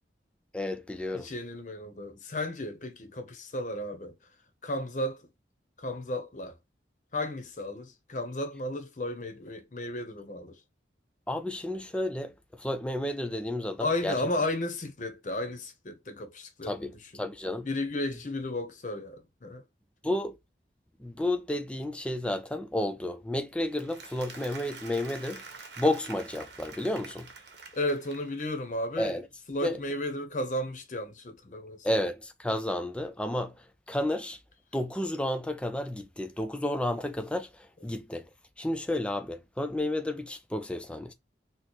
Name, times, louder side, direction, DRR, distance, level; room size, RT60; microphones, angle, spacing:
voice 1, 0.5-1.3 11.3-14.2 16.6-17.7 20.0-20.4 21.0-25.4 25.8-27.3 29.0-29.3 29.6-29.8 31.8-34.4 34.7-38.3 38.6-41.1, left 1 dB, 5° left, 0.3 m, -31 dB
voice 2, 1.1-4.1 4.6-5.2 5.8-6.5 7.1-10.6 13.8-16.9 17.6-19.6 27.7-29.2 29.5-31.9, left 1 dB, 45° left, 0.6 m, -34 dB
Applause, 23.6-28.7, right 4 dB, 80° right, 0.9 m, -47 dB
4.0 x 2.0 x 2.9 m
head